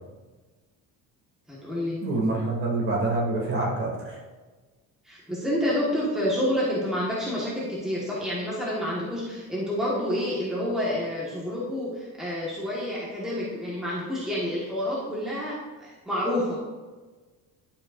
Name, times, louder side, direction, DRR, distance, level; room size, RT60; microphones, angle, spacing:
voice 1, 1.5-2.0 5.0-16.7, left 1 dB, ahead, -7 dB, 1.4 m, -28 dB
voice 2, 2.0-4.2, right 2 dB, 35° right, -3 dB, 2.4 m, -26 dB
11.5 x 7.8 x 2.5 m, 1.3 s
cardioid pair, 165°, 36 cm